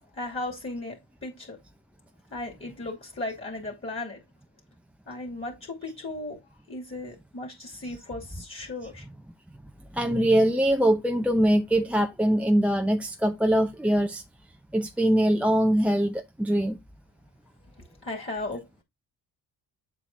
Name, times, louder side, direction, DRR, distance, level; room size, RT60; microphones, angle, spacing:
voice 1, 0.1-1.6 2.3-4.2 5.1-6.4 6.7-9.1 18.0-18.6, left 2 dB, 30° left, 2.5 m, -36 dB
voice 2, 9.9-14.2 14.7-16.8, right 1 dB, 5° right, 0.6 m, -23 dB
7.6 x 4.9 x 2.7 m
supercardioid pair, 55°, 45 cm